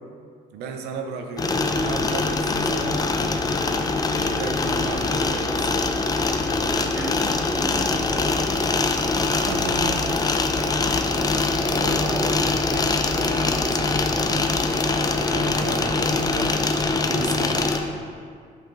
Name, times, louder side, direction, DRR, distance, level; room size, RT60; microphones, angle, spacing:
voice 1, 0.5-3.1 4.1-5.8 9.3-10.3 11.0-11.4 11.6-14.4 14.9-16.6 17.1-17.8, right 5 dB, 80° right, 4 dB, 0.6 m, -34 dB
sound 1, 1.4-17.8, left 3 dB, 20° left, 0.5 m, -23 dB
voice 2, 6.7-8.6 11.6-12.3, right 1 dB, 5° right, -1 dB, 1.0 m, -34 dB
7.7 x 4.5 x 3.8 m, 2.1 s
cardioid pair, 110°, 17 cm